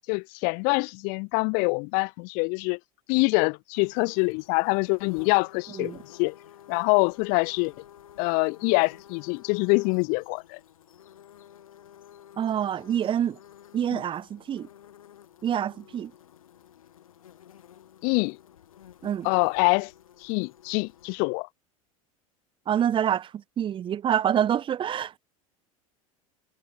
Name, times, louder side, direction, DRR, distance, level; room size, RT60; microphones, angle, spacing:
voice 1, 0.1-2.8 3.1-5.9 6.2-6.3 6.7-7.7 8.2-10.6 13.9-14.0 18.0-18.4 19.2-19.9 20.2-21.5, left 36 dB, 55° left, 1.1 m, -25 dB
sound 1, 3.7-21.2, left 10 dB, 75° left, 4.0 m, -52 dB
voice 2, 12.4-13.4 13.7-14.7 15.4-16.1 19.0-19.3 22.7-25.2, right 9 dB, 30° right, 0.7 m, -26 dB
figure-of-eight pair, 75°, 18 cm